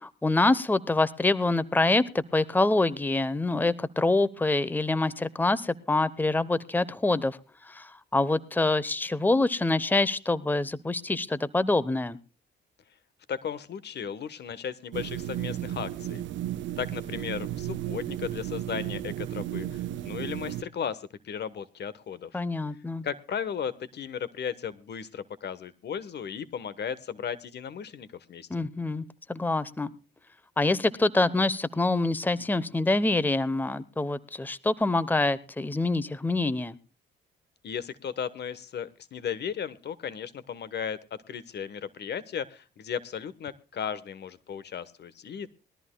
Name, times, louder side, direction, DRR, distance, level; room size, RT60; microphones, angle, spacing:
voice 1, 0.0-7.4 7.6-12.2 22.3-23.0 28.5-29.0 29.3-29.9 30.6-36.8, left 2 dB, 10° left, 17 dB, 0.9 m, -26 dB
voice 2, 13.3-16.2 16.8-22.4 23.0-28.5 37.6-41.0 41.3-45.5, left 7 dB, 60° left, 16 dB, 1.2 m, -35 dB
sound 1, 14.9-20.6, right 13 dB, 70° right, 0.7 m, -34 dB
21.5 x 14.0 x 2.3 m, 0.34 s
cardioid pair, 90°, 20 cm